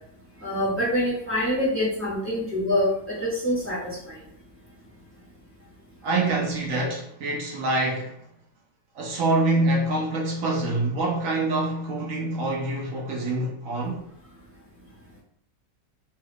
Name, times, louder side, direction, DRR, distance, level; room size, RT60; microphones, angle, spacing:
voice 1, 0.4-4.0, left 1 dB, 10° right, 1.0 m, -25 dB
voice 2, 6.0-8.2 9.0-14.0, right 2 dB, 70° right, 0.8 m, -25 dB
3.1 x 2.3 x 3.2 m
omnidirectional pair, 1.8 m